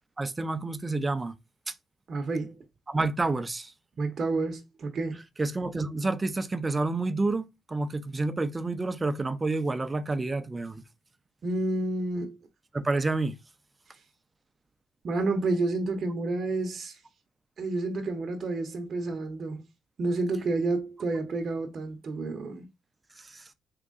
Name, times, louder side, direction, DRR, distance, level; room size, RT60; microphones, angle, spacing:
voice 1, 0.2-1.3 1.7-1.8 2.9-3.7 5.4-10.8 12.7-13.3 23.2-23.5, right 3 dB, 20° right, 0.5 m, -29 dB
voice 2, 2.1-2.5 4.0-5.2 11.4-12.4 15.0-17.0 17.6-19.6 20.0-22.7, right 2 dB, 50° right, 0.8 m, -30 dB
3.6 x 2.9 x 3.7 m
cardioid pair, 90°, 0 cm